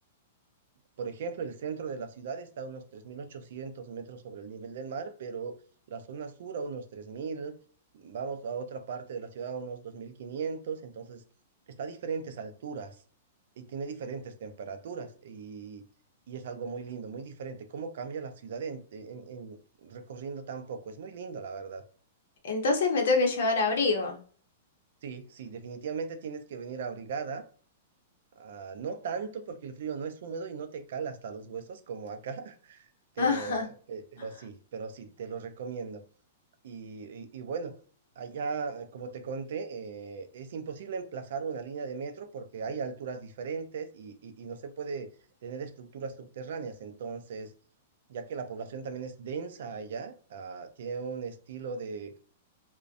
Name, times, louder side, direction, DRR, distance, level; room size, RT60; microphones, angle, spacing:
voice 1, 1.0-5.5 5.9-7.6 7.9-11.2 11.7-13.0 13.6-15.8 16.3-21.8 25.0-27.5 28.3-32.9 33.2-36.0 36.6-37.8 38.2-45.1 45.4-47.5 48.1-52.1, right 5 dB, 60° right, 0.4 m, -38 dB
voice 2, 22.4-24.2 33.2-33.7, left 3 dB, 65° left, 0.7 m, -25 dB
2.5 x 2.1 x 2.5 m
supercardioid pair, 175°, 0 cm